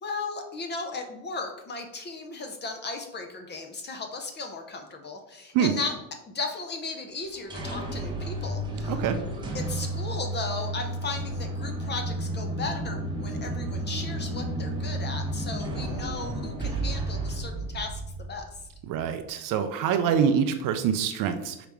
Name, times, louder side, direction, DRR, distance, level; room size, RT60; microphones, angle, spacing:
voice 1, 0.0-5.9 6.3-9.0 9.5-18.5, left 3 dB, 25° left, 5 dB, 0.5 m, -36 dB
sound 1, 7.2-18.9, right 1 dB, 10° right, 0.8 m, -32 dB
voice 2, 8.9-9.2 18.9-21.7, right 7 dB, 45° right, 8 dB, 0.5 m, -25 dB
4.9 x 2.9 x 3.4 m, 0.86 s
supercardioid pair, 110°, 46 cm